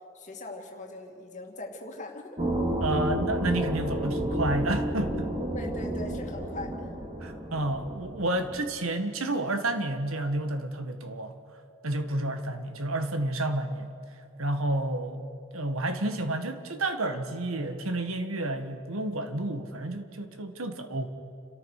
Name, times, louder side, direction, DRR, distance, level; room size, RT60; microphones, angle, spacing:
voice 1, 0.1-2.4 5.5-6.9 12.0-12.3, left 2 dB, 35° left, 2 dB, 2.4 m, -40 dB
sound 1, 2.4-8.7, right 1 dB, 25° right, 2.4 m, -31 dB
voice 2, 2.8-5.3 7.2-11.4 11.8-13.9 14.4-15.3 15.5-21.1, right 2 dB, 85° right, 8 dB, 1.7 m, -30 dB
29.5 x 14.0 x 6.6 m, 2.7 s
head